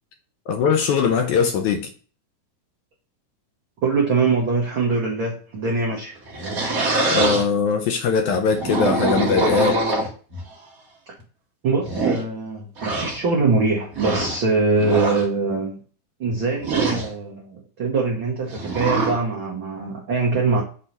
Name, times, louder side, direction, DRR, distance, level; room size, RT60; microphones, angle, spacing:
voice 1, 0.5-1.9 7.1-9.8, left 5 dB, 75° left, 1.8 m, -21 dB
voice 2, 3.8-6.1 11.1-11.2 11.6-15.8 16.2-20.6, right 4 dB, 75° right, 1.1 m, -23 dB
sound 1, 6.2-7.5 8.4-10.4 11.2-11.3 11.8-12.2 12.8-13.2 13.9-14.4 14.8-15.3 16.6-17.1 18.5-19.2, right 2 dB, 55° right, 1.0 m, -24 dB
6.4 x 3.0 x 5.2 m
omnidirectional pair, 3.9 m